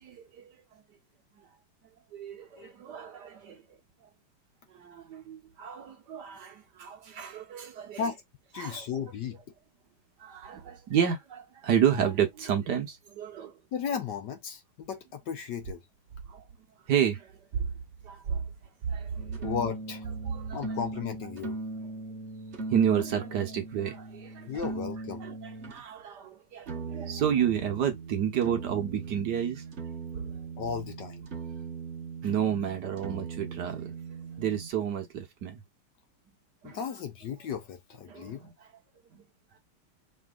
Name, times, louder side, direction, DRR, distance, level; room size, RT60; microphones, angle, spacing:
voice 1, 0.0-0.6 2.1-3.8 4.8-8.0 8.6-8.9 10.2-13.5 16.3-16.4 16.9-17.7 18.0-18.4 18.9-19.5 20.2-20.6 22.7-24.7 25.2-29.6 30.1-30.2 32.2-33.9 34.4-35.6 36.6-36.8 38.1-38.5 39.1-39.2, right 9 dB, 60° right, 1.3 m, -30 dB
voice 2, 8.5-9.4 13.7-15.8 19.4-20.1 20.5-21.6 24.5-25.2 30.6-31.3 36.6-38.4, left 7 dB, 65° left, 1.3 m, -35 dB
sound 1, 19.2-25.8 26.7-34.7, right 4 dB, 45° right, 1.0 m, -39 dB
5.0 x 3.2 x 2.3 m
omnidirectional pair, 2.3 m